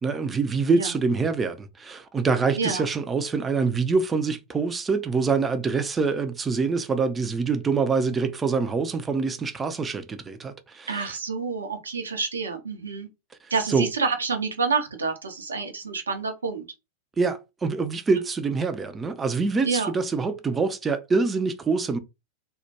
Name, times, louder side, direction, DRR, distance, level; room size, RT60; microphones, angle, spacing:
voice 1, 0.0-11.1 13.4-13.9 17.2-22.0, right 4 dB, 15° right, 0.3 m, -25 dB
voice 2, 2.6-2.9 10.9-13.1 13.5-16.7 19.6-19.9, right 4 dB, 70° right, 0.5 m, -28 dB
2.2 x 2.1 x 2.8 m
figure-of-eight pair, 90°, 0 cm